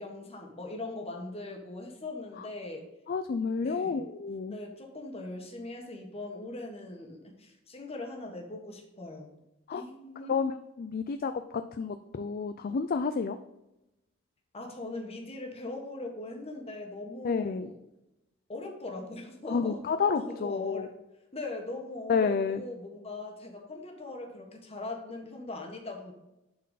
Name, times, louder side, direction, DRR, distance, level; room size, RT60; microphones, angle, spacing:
voice 1, 0.0-2.8 3.6-4.0 4.5-9.3 9.7-10.4 14.5-17.8 18.5-19.8 20.1-20.9 21.3-26.1, left 2 dB, 30° left, 2 dB, 1.5 m, -40 dB
voice 2, 3.1-4.6 9.7-9.8 10.3-10.5 10.8-11.3 11.8-13.4 17.2-17.7 19.5-20.9 22.1-22.6, left 5 dB, 45° left, 9 dB, 0.4 m, -29 dB
11.0 x 4.4 x 4.0 m, 0.93 s
head